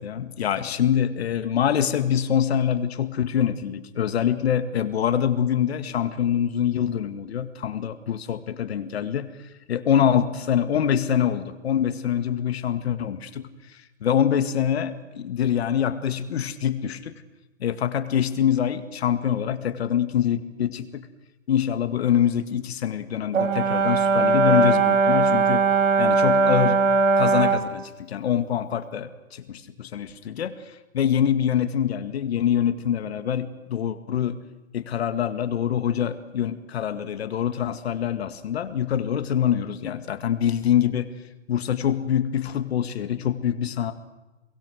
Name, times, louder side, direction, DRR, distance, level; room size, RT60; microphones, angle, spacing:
voice 1, 0.0-9.3 9.7-17.2 17.6-21.1 21.5-25.6 26.0-26.8 27.2-34.4 34.7-41.1 41.5-43.9, left 9 dB, 55° left, 10 dB, 2.0 m, -25 dB
Brass instrument, 23.3-27.7, right 4 dB, 75° right, 2.9 m, -19 dB
26.5 x 22.5 x 6.4 m, 1.1 s
hypercardioid pair, 150°, 38 cm